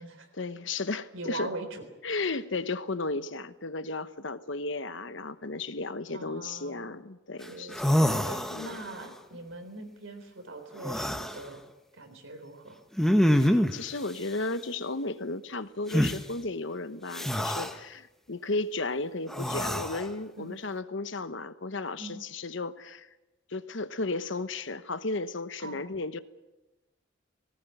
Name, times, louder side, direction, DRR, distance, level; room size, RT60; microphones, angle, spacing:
voice 1, 0.3-1.5 2.0-7.9 8.5-8.8 13.4-23.1 23.5-26.2, left 3 dB, 70° left, 12 dB, 1.1 m, -34 dB
voice 2, 0.9-1.8 6.1-7.0 7.5-11.6 11.9-12.8 20.4-20.6 22.0-22.2 25.6-25.9, right 2 dB, 80° right, 6 dB, 4.0 m, -42 dB
sound 1, 7.4-7.5 7.7-9.0 10.8-11.4 13.0-13.8 15.9-16.2 17.1-17.7 19.3-20.1, equal, ahead, 1.0 m, -26 dB
20.0 x 18.0 x 9.4 m, 1.0 s
head